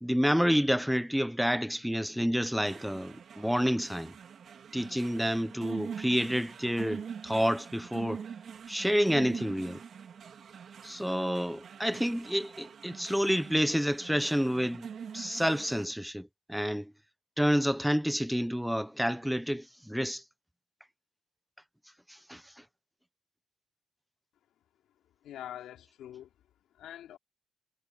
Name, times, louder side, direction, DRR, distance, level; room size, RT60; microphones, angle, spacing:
voice 1, 0.0-4.1 4.7-8.2 8.7-9.8 10.8-14.9 15.1-16.9 17.4-20.2 22.1-22.4, equal, ahead, 0.9 m, -29 dB
sound 1, 2.6-15.9, right 7 dB, 55° right, 2.8 m, -44 dB
voice 2, 25.2-26.3 26.7-27.2, left 11 dB, 80° left, 3.8 m, -44 dB
cardioid pair, 90°, 0 cm